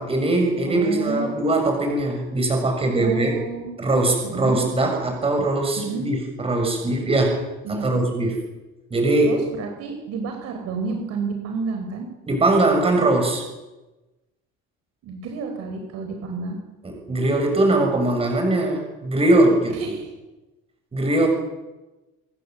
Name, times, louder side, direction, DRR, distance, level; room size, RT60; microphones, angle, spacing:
voice 1, 0.0-3.3 3.8-7.4 7.7-8.5 8.9-9.4 12.3-13.4 16.8-19.9 20.9-21.3, right 2 dB, 20° right, 3 dB, 7.0 m, -21 dB
voice 2, 0.7-1.4 3.0-3.7 4.2-4.6 5.8-6.1 7.6-7.9 9.2-12.1 15.0-16.6 19.7-20.1, right 4 dB, 60° right, 4 dB, 4.6 m, -30 dB
27.0 x 20.5 x 7.9 m, 1.1 s
cardioid pair, 160°, 29 cm